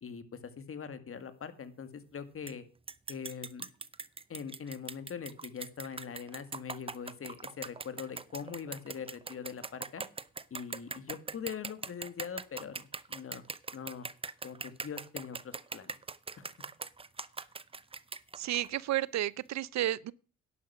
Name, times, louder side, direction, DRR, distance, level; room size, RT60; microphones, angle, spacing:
voice 1, 0.0-2.7 3.1-3.7 4.3-10.0 10.5-13.4 13.7-14.1 14.4-16.0 16.4-16.5, left 7 dB, 45° left, 1.9 m, -42 dB
sound 1, 2.5-2.6 2.9-18.7, right 4 dB, 20° right, 0.6 m, -41 dB
voice 2, 18.4-20.1, right 13 dB, 65° right, 0.6 m, -32 dB
11.0 x 10.0 x 6.1 m
cardioid pair, 90°, 30 cm